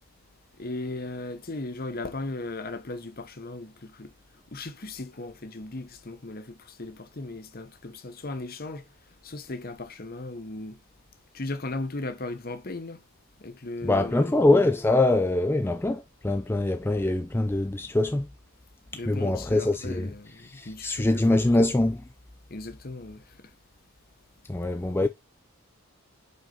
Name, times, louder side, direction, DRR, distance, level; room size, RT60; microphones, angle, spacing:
voice 1, 0.6-4.1 4.5-8.9 9.2-10.8 11.3-13.0 13.4-14.4 18.9-21.7 22.5-23.5 25.0-25.1, left 2 dB, 40° left, 0.9 m, -37 dB
voice 2, 13.8-18.3 19.1-20.1 20.5-22.0 24.5-25.1, left 2 dB, 10° left, 0.3 m, -23 dB
5.5 x 5.5 x 3.8 m
head